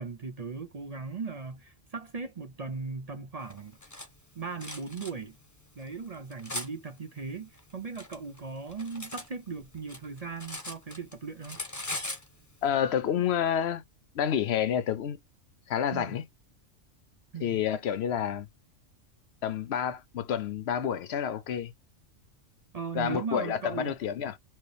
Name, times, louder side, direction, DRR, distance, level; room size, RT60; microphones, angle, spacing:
voice 1, 0.0-3.8 4.4-5.3 5.8-11.6 15.9-16.2 17.3-17.6 22.7-23.9, right 5 dB, 45° right, 0.5 m, -38 dB
Cutlery silverware, 3.5-4.1 4.6-5.1 5.8-6.7 7.6-9.3 9.6-11.1 11.4-12.3, left 2 dB, 15° left, 1.0 m, -39 dB
voice 2, 12.6-13.8 14.2-15.2 15.7-16.2 17.4-18.5 19.4-21.7 22.9-24.3, left 9 dB, 65° left, 0.8 m, -29 dB
4.5 x 2.9 x 3.3 m
omnidirectional pair, 1.3 m